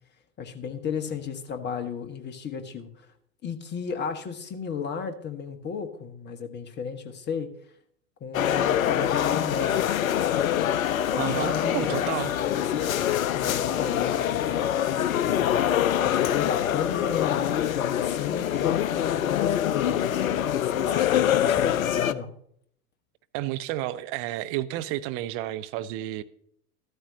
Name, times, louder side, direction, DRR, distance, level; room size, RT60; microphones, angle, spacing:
voice 1, 0.4-2.9 3.4-7.5 8.2-9.9 11.1-15.6 16.0-22.3, left 6 dB, 20° left, 1.3 m, -34 dB
sound 1, 8.3-22.1, left 10 dB, 65° left, 0.7 m, -25 dB
voice 2, 11.2-12.3 23.3-26.2, right 14 dB, 30° right, 0.6 m, -31 dB
14.0 x 12.5 x 2.8 m
figure-of-eight pair, 95°, 46 cm